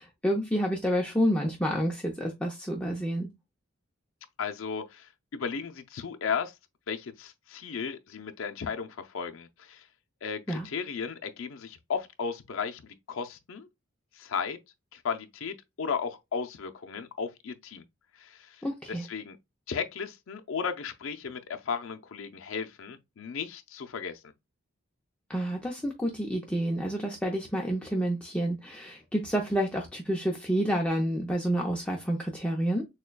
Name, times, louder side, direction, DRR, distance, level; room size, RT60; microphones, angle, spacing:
voice 1, 0.0-3.3 10.5-10.7 18.6-19.0 25.3-32.9, equal, 5° left, 0.5 m, -29 dB
voice 2, 4.4-6.5 6.9-9.8 10.2-13.7 14.2-14.6 14.9-17.8 18.2-18.6 18.9-19.4 19.7-24.3, left 6 dB, 70° left, 0.5 m, -35 dB
6.4 x 2.2 x 2.2 m
head